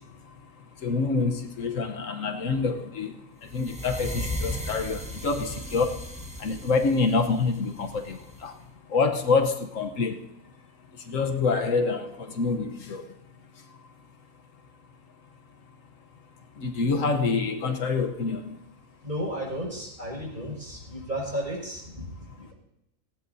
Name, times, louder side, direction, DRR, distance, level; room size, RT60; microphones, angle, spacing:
voice 1, 0.8-3.1 3.5-6.0 6.4-8.2 8.4-8.5 8.9-10.2 11.1-12.1 12.4-13.0 16.6-18.4, left 4 dB, 75° left, 5 dB, 1.4 m, -26 dB
sound 1, 3.5-8.5, left 1 dB, 5° right, 1.3 m, -36 dB
voice 2, 19.0-22.5, equal, 35° right, -3 dB, 5.7 m, -34 dB
18.0 x 16.5 x 2.7 m, 0.85 s
omnidirectional pair, 1.4 m